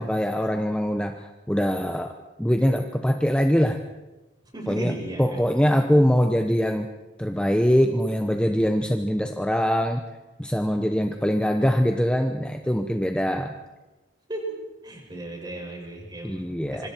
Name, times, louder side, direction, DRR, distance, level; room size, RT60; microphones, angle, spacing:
voice 1, 0.0-2.1 2.4-3.8 4.7-6.9 7.2-10.0 10.4-13.5 16.2-16.9, equal, 5° left, 5 dB, 0.9 m, -23 dB
voice 2, 4.5-5.4 14.3-14.5 14.8-16.4 16.7-16.9, right 2 dB, 25° right, 0 dB, 6.0 m, -34 dB
26.5 x 25.0 x 4.5 m, 1.1 s
head